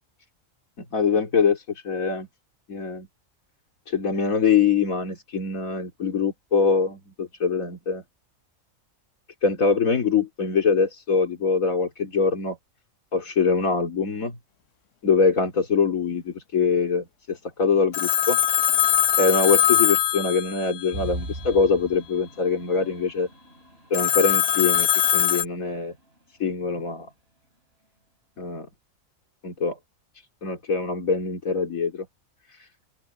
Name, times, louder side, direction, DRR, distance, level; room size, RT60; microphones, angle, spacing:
voice 1, 0.8-2.3 2.7-3.1 3.9-8.0 9.4-12.6 13.1-14.4 15.0-18.4 19.2-23.3 23.9-26.0 26.4-27.1 28.4-28.7 29.4-29.8 30.4-32.1 32.5-32.7, left 5 dB, 85° left, 3.0 m, -23 dB
Telephone, 17.9-21.0 23.9-25.4, left 9 dB, 65° left, 1.3 m, -21 dB
sound 1, 20.9-26.5, right 1 dB, 50° right, 6.5 m, -40 dB
open air
omnidirectional pair, 1.4 m